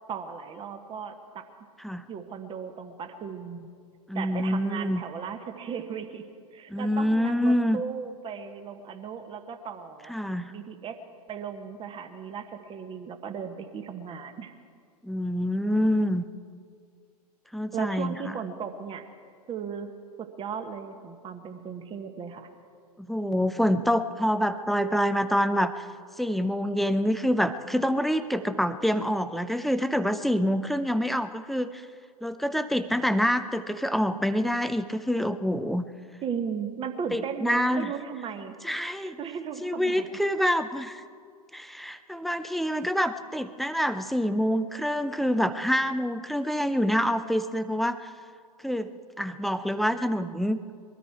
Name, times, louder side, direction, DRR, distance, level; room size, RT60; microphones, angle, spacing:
voice 1, 0.1-1.4 2.1-3.7 4.1-6.3 6.5-10.1 10.5-11.0 11.3-14.5 17.7-19.1 19.5-19.9 20.2-22.5 36.2-38.5 39.0-40.1, right 7 dB, 25° right, 7 dB, 1.3 m, -36 dB
voice 2, 4.1-5.0 6.7-7.8 10.1-10.5 15.0-16.2 17.5-18.2 23.0-25.9 26.2-31.8 32.2-35.8 37.1-37.9 38.6-39.2 39.6-41.0 41.5-48.1 48.6-48.9 49.2-50.6, equal, ahead, 11 dB, 0.5 m, -26 dB
22.0 x 13.5 x 4.6 m, 2.2 s
figure-of-eight pair, 95°, 21 cm